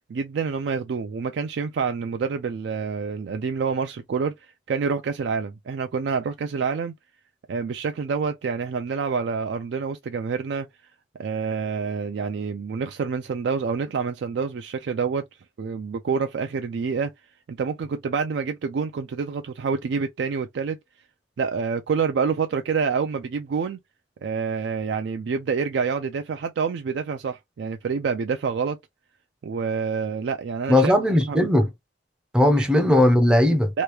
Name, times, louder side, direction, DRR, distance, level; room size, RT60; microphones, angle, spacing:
voice 1, 0.1-4.3 4.7-6.9 7.5-10.7 11.2-15.2 15.6-17.1 17.5-20.8 21.4-23.8 24.2-28.8 29.4-30.9 31.3-31.4 32.6-32.7 33.7-33.8, right 5 dB, 65° right, 0.3 m, -27 dB
voice 2, 30.7-31.7 32.3-33.7, left 1 dB, 5° right, 0.5 m, -18 dB
3.0 x 2.3 x 3.2 m
head